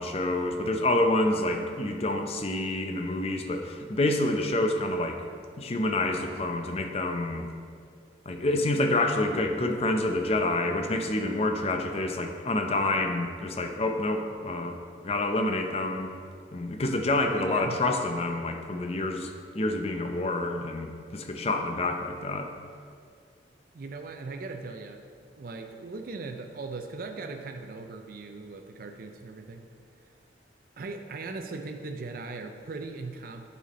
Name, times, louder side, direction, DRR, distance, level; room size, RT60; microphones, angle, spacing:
voice 1, 0.0-5.2 5.6-7.5 8.3-14.8 15.0-16.1 16.5-22.5, left 2 dB, 35° left, 5 dB, 0.5 m, -28 dB
voice 2, 17.3-17.8 23.7-25.0 25.4-29.6 30.8-33.5, right 3 dB, 50° right, 5 dB, 0.4 m, -39 dB
9.1 x 4.2 x 4.1 m, 2.1 s
head